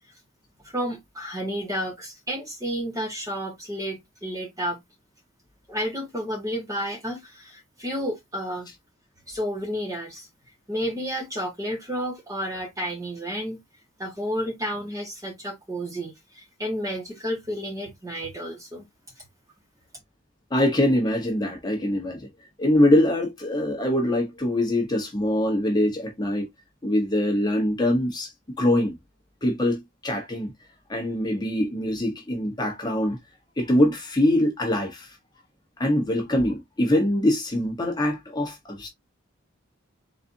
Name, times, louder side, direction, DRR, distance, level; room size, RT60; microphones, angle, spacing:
voice 1, 0.7-4.8 5.7-8.7 9.3-10.3 10.7-13.6 14.0-18.8, equal, 15° right, 1.5 m, -31 dB
voice 2, 20.5-22.3 22.6-26.5 26.8-28.3 28.6-28.9 29.4-30.5 30.9-33.2 33.6-35.2 35.8-38.9, left 1 dB, 20° left, 1.1 m, -23 dB
4.1 x 4.0 x 2.7 m
head